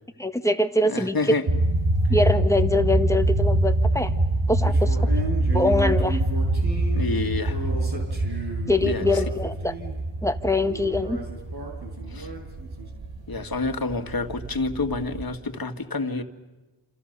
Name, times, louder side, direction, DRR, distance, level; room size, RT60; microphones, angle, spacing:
voice 1, 0.2-1.3 2.1-4.1 4.5-5.0 5.5-6.2 8.7-9.7 10.2-11.2, left 2 dB, 5° left, 7 dB, 1.7 m, -23 dB
voice 2, 0.9-1.4 6.9-7.6 8.8-9.1 12.1-12.3 13.3-16.2, left 3 dB, 50° left, 6 dB, 2.1 m, -28 dB
sound 1, 1.5-15.4, right 1 dB, 80° right, 3.4 m, -25 dB
sound 2, 4.7-9.9 10.6-12.9, right 2 dB, 60° right, 6.1 m, -35 dB
28.5 x 28.0 x 6.8 m, 1.1 s
wide cardioid pair, 65°, 44 cm